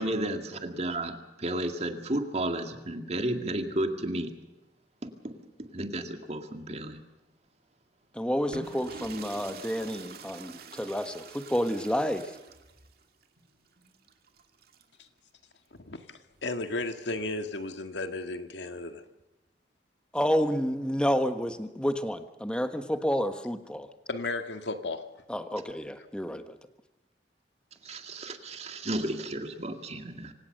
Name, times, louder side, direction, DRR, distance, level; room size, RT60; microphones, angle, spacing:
voice 1, 0.0-4.3 5.0-7.0 27.8-30.3, right 1 dB, 40° right, 6 dB, 2.2 m, -33 dB
voice 2, 8.1-12.3 20.1-23.9 25.3-26.6, equal, 5° left, 9 dB, 1.4 m, -29 dB
sound 1, 8.4-15.0 16.3-17.8, right 4 dB, 60° right, 2.3 m, -46 dB
voice 3, 15.8-19.0 24.1-25.1, left 2 dB, 90° left, 7 dB, 1.9 m, -34 dB
25.5 x 17.0 x 6.7 m, 1.0 s
head